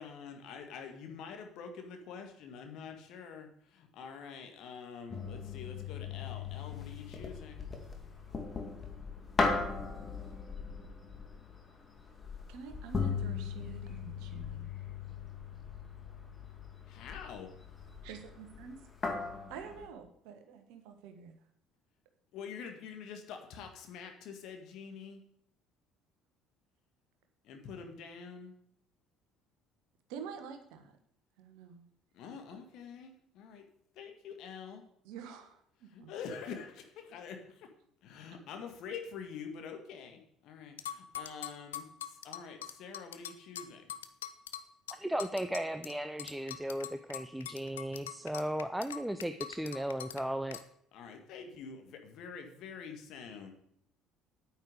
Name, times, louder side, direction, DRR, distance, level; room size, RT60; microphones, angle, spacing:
voice 1, 0.0-7.7 16.9-17.5 22.3-25.2 27.4-28.5 32.1-33.7 34.0-34.8 35.9-37.7 38.0-43.8 50.9-53.5, left 6 dB, 55° left, 5 dB, 1.6 m, -46 dB
sound 1, 5.1-19.9, left 4 dB, 30° left, 2.2 m, -38 dB
voice 2, 12.5-14.7 18.0-18.8 19.2-21.4 30.1-30.9 31.4-31.8 32.3-32.6 35.0-36.1, right 6 dB, 60° right, 7 dB, 1.4 m, -47 dB
sound 2, 40.8-45.9 46.2-50.2 50.5-50.6, left 10 dB, 75° left, 0.5 m, -43 dB
voice 3, 44.9-50.6, right 1 dB, 5° right, 9 dB, 0.6 m, -36 dB
9.2 x 9.0 x 5.0 m, 0.69 s
figure-of-eight pair, 55°, 0 cm